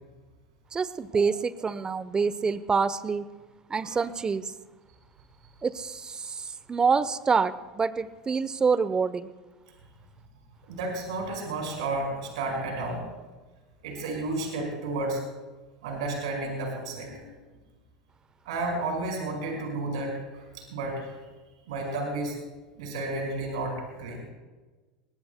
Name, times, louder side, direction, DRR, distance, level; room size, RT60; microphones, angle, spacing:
voice 1, 0.7-3.3 3.7-4.4 5.6-9.3, right 5 dB, 20° right, 15 dB, 0.8 m, -26 dB
voice 2, 10.6-13.0 13.8-15.2 15.8-17.3 18.4-21.2 21.7-22.4 22.8-24.2, right 2 dB, 75° right, 1 dB, 5.1 m, -32 dB
23.5 x 19.5 x 2.2 m, 1.3 s
hypercardioid pair, 90°, 3 cm